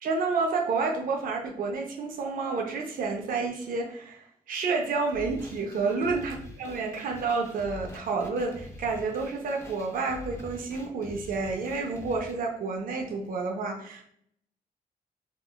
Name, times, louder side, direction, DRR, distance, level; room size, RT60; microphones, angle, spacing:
voice 1, 0.0-14.0, right 4 dB, 65° right, 1 dB, 0.5 m, -30 dB
sound 1, 5.1-12.3, left 1 dB, 15° left, 0.5 m, -45 dB
3.6 x 2.3 x 2.2 m, 0.68 s
wide cardioid pair, 125°, 15 cm